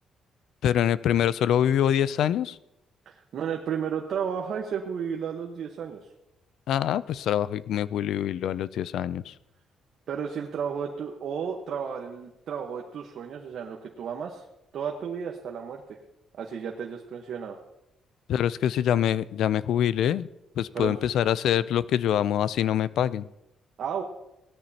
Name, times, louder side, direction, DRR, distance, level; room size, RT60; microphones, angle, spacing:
voice 1, 0.6-2.6 6.7-9.3 18.3-20.3 20.6-23.2, left 10 dB, 75° left, 18 dB, 0.4 m, -25 dB
voice 2, 3.1-6.0 10.1-14.4 14.7-15.8 16.4-17.6 20.7-20.9 23.8-24.0, right 7 dB, 65° right, 1 dB, 1.1 m, -33 dB
18.0 x 13.0 x 2.9 m, 0.91 s
cardioid pair, 90°, 0 cm